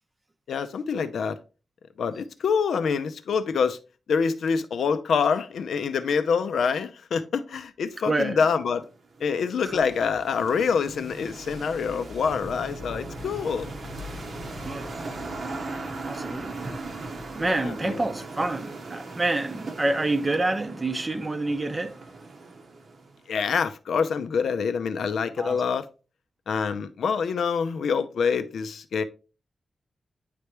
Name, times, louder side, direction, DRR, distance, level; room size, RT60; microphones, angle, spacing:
voice 1, 0.5-1.4 2.0-3.8 4.1-8.8 9.2-13.7 17.4-18.0 23.3-25.9 26.5-29.0, left 6 dB, 80° left, 0.5 m, -26 dB
voice 2, 8.1-8.4 9.6-9.8 14.6-14.9 16.0-16.6 17.3-21.9 25.4-25.6, right 2 dB, 20° right, 0.5 m, -27 dB
sound 1, 8.8-23.3, right 3 dB, 50° right, 0.8 m, -39 dB
sound 2, 9.6-17.9, left 3 dB, 50° left, 0.9 m, -44 dB
9.4 x 3.4 x 3.0 m
wide cardioid pair, 175°, 0 cm